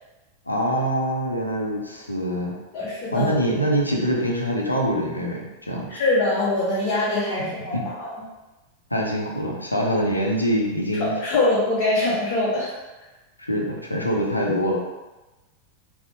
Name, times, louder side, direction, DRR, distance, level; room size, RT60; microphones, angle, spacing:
voice 1, 0.5-2.6 3.1-5.9 7.4-7.9 8.9-11.1 13.5-14.8, equal, 85° left, -1 dB, 0.5 m, -24 dB
voice 2, 2.7-3.3 5.9-8.1 11.0-12.7, left 2 dB, 45° left, -7 dB, 0.7 m, -23 dB
4.1 x 2.1 x 2.7 m, 1.1 s
figure-of-eight pair, 90°, 0 cm